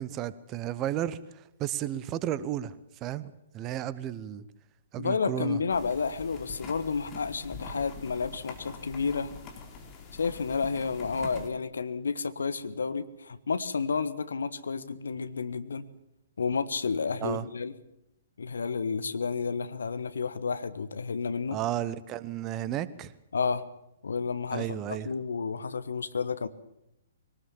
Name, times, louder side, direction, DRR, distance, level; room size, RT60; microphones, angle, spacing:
voice 1, 0.0-2.7 3.0-4.4 4.9-5.6 17.2-17.4 21.5-23.1 24.5-25.1, right 12 dB, 25° right, 17 dB, 0.9 m, -33 dB
voice 2, 5.0-9.3 10.1-15.8 16.4-17.7 18.4-21.6 23.3-23.6 24.0-24.8 25.0-26.5, left 5 dB, 65° left, 13 dB, 1.3 m, -31 dB
sound 1, 5.7-11.5, left 4 dB, 25° left, 3.7 m, -44 dB
22.5 x 19.0 x 7.2 m, 0.84 s
figure-of-eight pair, 120°, 0 cm